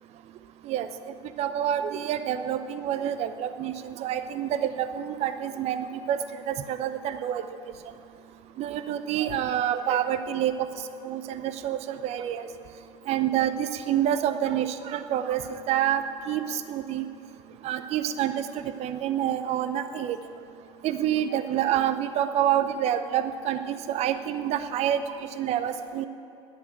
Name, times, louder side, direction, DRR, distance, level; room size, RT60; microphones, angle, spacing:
voice 1, 0.6-6.2 6.5-7.4 8.6-10.7 11.0-12.5 13.1-17.1 17.6-20.2 20.8-26.1, right 10 dB, 45° right, 11 dB, 0.6 m, -28 dB
10.5 x 8.0 x 8.9 m, 2.7 s
figure-of-eight pair, 70°, 16 cm